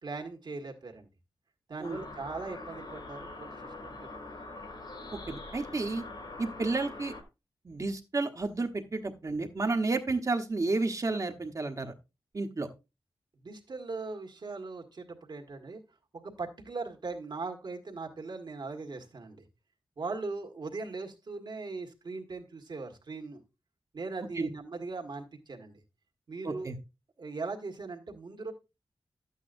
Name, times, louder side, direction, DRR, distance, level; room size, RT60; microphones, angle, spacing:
voice 1, 0.0-1.1 1.7-4.3 13.3-15.8 16.1-19.4 20.0-23.4 23.9-25.8 26.3-26.7 27.2-28.5, right 3 dB, 60° right, 3 dB, 1.8 m, -39 dB
sound 1, 1.8-7.2, left 2 dB, 65° left, 2.7 m, -44 dB
voice 2, 5.3-6.0 6.4-7.1 7.6-11.9 12.3-12.7 24.3-24.5 26.4-26.8, right 3 dB, 40° right, 6 dB, 1.2 m, -31 dB
12.0 x 8.4 x 2.6 m, 0.26 s
wide cardioid pair, 100°, 8 cm